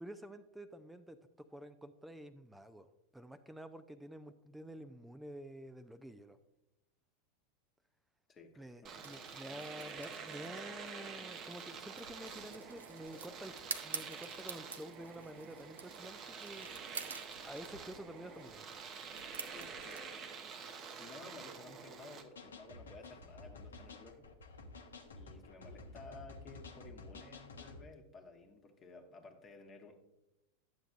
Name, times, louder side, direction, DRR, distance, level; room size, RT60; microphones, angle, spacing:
voice 1, 0.0-6.4 8.6-16.7 17.4-18.7, right 1 dB, 5° right, 10 dB, 0.4 m, -50 dB
voice 2, 8.3-8.9 19.5-20.1 21.0-24.2 25.1-30.0, left 3 dB, 25° left, 3 dB, 1.1 m, -54 dB
Domestic sounds home sounds, 8.8-22.3, right 5 dB, 30° right, 0.8 m, -48 dB
sound 1, 9.0-20.0, right 5 dB, 70° right, 0.6 m, -49 dB
sound 2, 22.4-27.8, left 3 dB, 70° left, 0.8 m, -51 dB
11.5 x 7.7 x 2.5 m, 0.92 s
figure-of-eight pair, 90°, 0 cm